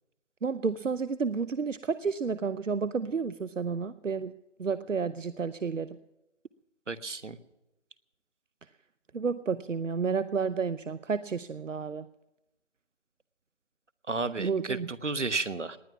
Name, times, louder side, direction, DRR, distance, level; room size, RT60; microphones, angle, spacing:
voice 1, 0.4-4.3 4.6-6.0 9.1-12.1 14.4-14.9, right 5 dB, 90° right, 14 dB, 0.8 m, -31 dB
voice 2, 6.9-7.4 14.1-15.8, right 3 dB, 70° right, 13 dB, 1.3 m, -32 dB
19.5 x 10.5 x 5.9 m, 0.93 s
figure-of-eight pair, 175°, 37 cm